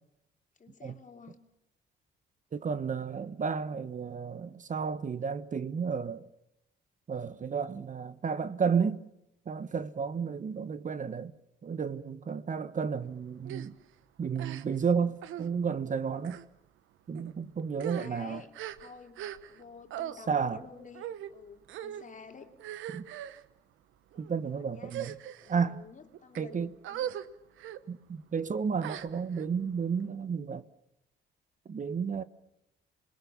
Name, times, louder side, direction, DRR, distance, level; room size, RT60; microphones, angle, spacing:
voice 1, 0.6-1.4 17.7-18.5 18.8-22.5 24.1-25.1 25.4-27.1, left 5 dB, 40° left, 3.2 m, -51 dB
voice 2, 2.5-6.2 7.1-9.1 9.5-11.3 11.6-13.7 14.2-16.4 17.1-18.4 20.3-20.6 22.9-23.0 24.2-25.1 25.5-25.8 26.4-26.7 27.9-30.6 31.7-32.2, right 6 dB, 40° right, 1.1 m, -32 dB
sound 1, 13.4-13.7 14.3-14.9 15.2-15.5 16.2-16.4 17.1-17.3 17.7-19.6 19.9-20.1 20.9-21.3 21.7-22.0 22.6-23.4 24.1-24.3 24.8-25.5 26.1-26.4 26.8-27.2 27.6-27.8 28.8-29.5, right 11 dB, 85° right, 1.2 m, -40 dB
27.0 x 21.5 x 7.3 m
cardioid pair, 90°, 20 cm